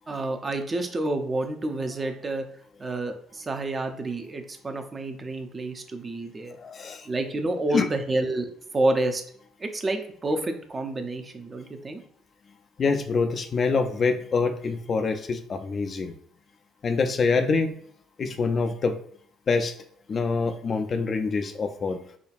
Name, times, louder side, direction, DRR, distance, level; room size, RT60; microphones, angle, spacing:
voice 1, 0.1-2.4 2.8-6.6 7.1-8.5 8.7-9.2 9.6-12.0, right 2 dB, 30° right, 6 dB, 0.5 m, -29 dB
voice 2, 6.6-7.1 7.7-7.9 12.8-16.1 16.8-17.8 18.2-19.0 19.5-19.7 20.1-22.0, left 4 dB, 40° left, 7 dB, 0.4 m, -25 dB
4.9 x 2.2 x 2.5 m, 0.62 s
figure-of-eight pair, 50°, 0 cm